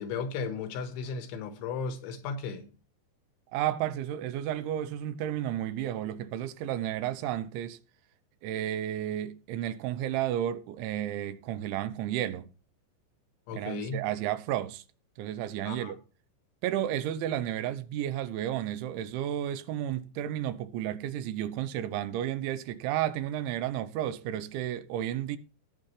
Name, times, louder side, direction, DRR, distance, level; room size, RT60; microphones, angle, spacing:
voice 1, 0.0-2.7 13.5-14.0 15.7-15.9, left 5 dB, 90° left, 3.9 m, -35 dB
voice 2, 3.5-7.8 8.4-12.5 13.5-14.8 15.2-16.0 16.6-25.4, right 11 dB, 85° right, 3.2 m, -32 dB
18.0 x 7.8 x 3.3 m
omnidirectional pair, 5.3 m